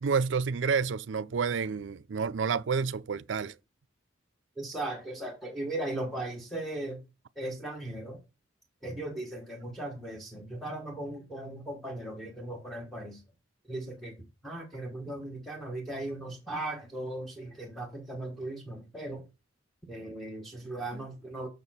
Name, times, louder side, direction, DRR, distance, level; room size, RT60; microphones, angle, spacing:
voice 1, 0.0-3.5, right 5 dB, 70° right, 0.4 m, -29 dB
voice 2, 4.6-7.0 7.4-8.2 8.8-13.2 13.7-14.1 14.4-19.2 19.9-21.5, right 1 dB, ahead, 1.3 m, -37 dB
6.9 x 6.5 x 4.1 m
head